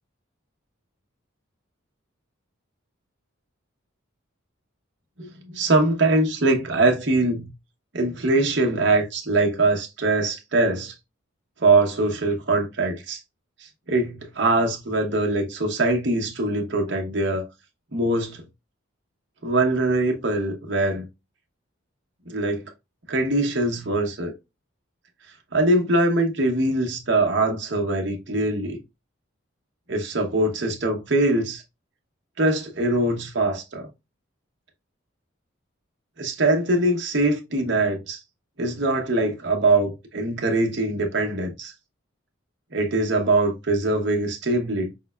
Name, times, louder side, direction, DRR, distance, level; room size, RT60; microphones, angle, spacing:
voice 1, 5.2-7.5 7.9-10.9 11.6-13.2 13.9-17.5 17.9-18.4 19.4-21.1 22.3-22.6 23.1-24.3 25.5-28.8 29.9-31.6 32.4-33.9 36.2-38.2 38.6-41.7 42.7-44.9, right 2 dB, 55° right, 0.9 m, -22 dB
5.3 x 2.1 x 2.2 m
head